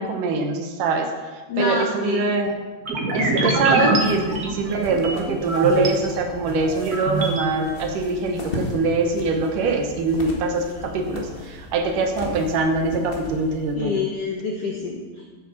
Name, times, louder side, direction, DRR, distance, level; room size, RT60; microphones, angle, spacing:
voice 1, 0.0-2.5 3.1-14.0, right 3 dB, 70° right, 4 dB, 2.5 m, -23 dB
voice 2, 1.5-2.3 13.8-15.3, left 4 dB, 70° left, 1 dB, 1.4 m, -27 dB
sound 1, 2.8-5.9 6.4-7.4, right 2 dB, 50° right, 1.1 m, -24 dB
sound 2, 3.9-13.8, left 1 dB, 50° left, 0.6 m, -37 dB
8.6 x 8.3 x 7.1 m, 1.3 s
omnidirectional pair, 4.1 m